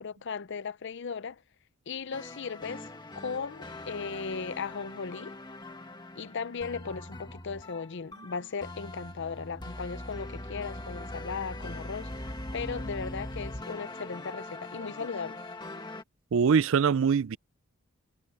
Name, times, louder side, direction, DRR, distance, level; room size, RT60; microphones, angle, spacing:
voice 1, 0.0-1.4 1.9-5.4 6.2-15.4, left 5 dB, 55° left, 0.6 m, -37 dB
sound 1, 2.1-16.0, left 1 dB, 20° left, 1.9 m, -41 dB
voice 2, 16.3-17.4, right 6 dB, 65° right, 0.4 m, -23 dB
head